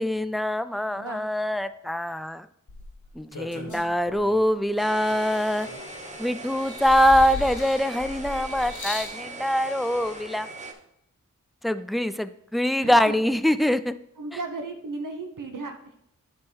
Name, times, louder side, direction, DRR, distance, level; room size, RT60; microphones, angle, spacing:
voice 1, 0.0-2.5 3.2-5.7 6.2-10.5 11.6-14.0, equal, ahead, 13 dB, 0.3 m, -24 dB
voice 2, 0.9-1.2 3.5-3.8 12.8-13.1 14.2-15.9, right 3 dB, 80° right, 4 dB, 1.0 m, -36 dB
sound 1, 2.7-4.5 5.1-6.1 6.6-9.2 10.1-10.2, left 3 dB, 70° left, 1.2 m, -37 dB
sound 2, 4.8-10.7, right 1 dB, 25° right, 1.1 m, -40 dB
10.5 x 3.7 x 4.6 m, 0.75 s
wide cardioid pair, 55°, 31 cm